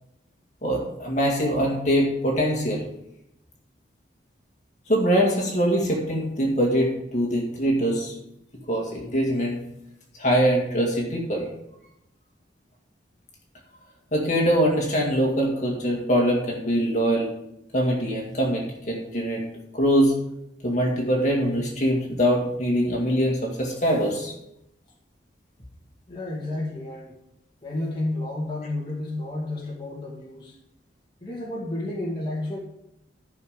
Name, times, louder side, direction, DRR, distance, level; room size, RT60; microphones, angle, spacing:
voice 1, 0.6-2.9 4.9-8.1 8.7-9.6 10.2-11.5 14.1-17.3 17.7-19.4 19.7-20.1 20.6-24.3, equal, 40° left, -1 dB, 2.1 m, -23 dB
voice 2, 26.1-27.1 27.6-30.6 31.2-32.6, left 2 dB, 25° left, -4 dB, 2.1 m, -31 dB
14.0 x 5.8 x 5.1 m, 0.82 s
head